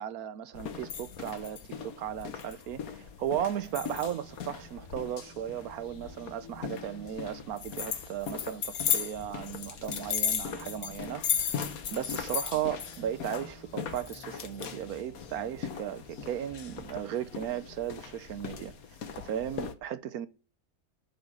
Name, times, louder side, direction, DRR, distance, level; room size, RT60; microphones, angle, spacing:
voice 1, 0.0-18.7 19.2-20.3, right 10 dB, 85° right, 1.3 m, -36 dB
sound 1, 0.5-19.7, left 7 dB, 75° left, 1.5 m, -37 dB
sound 2, 3.6-17.4, left 2 dB, 25° left, 1.2 m, -53 dB
11.0 x 5.6 x 7.5 m
omnidirectional pair, 1.5 m